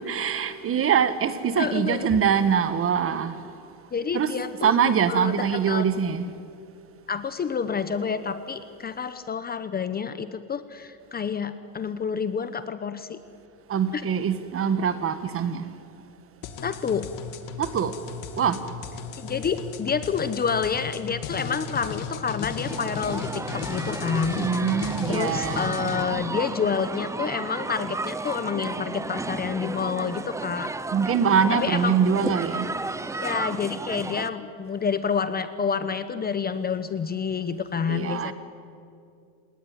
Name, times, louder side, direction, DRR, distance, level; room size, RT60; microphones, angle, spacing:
voice 1, 0.1-3.4 4.1-4.3 4.6-6.3 13.7-15.7 17.6-17.9 18.3-18.6 24.3-25.9 30.9-32.7 37.9-38.3, right 7 dB, 30° right, 1.4 m, -23 dB
voice 2, 1.6-2.1 3.9-4.7 5.1-5.9 7.1-13.2 13.9-14.0 16.6-17.1 19.2-30.7 31.5-32.0 33.2-38.3, left 6 dB, 20° left, 0.9 m, -28 dB
sound 1, 16.4-26.0, left 5 dB, 45° left, 2.2 m, -35 dB
sound 2, 22.7-34.3, right 3 dB, 5° right, 0.5 m, -33 dB
28.5 x 19.0 x 9.6 m
cardioid pair, 135°, 43 cm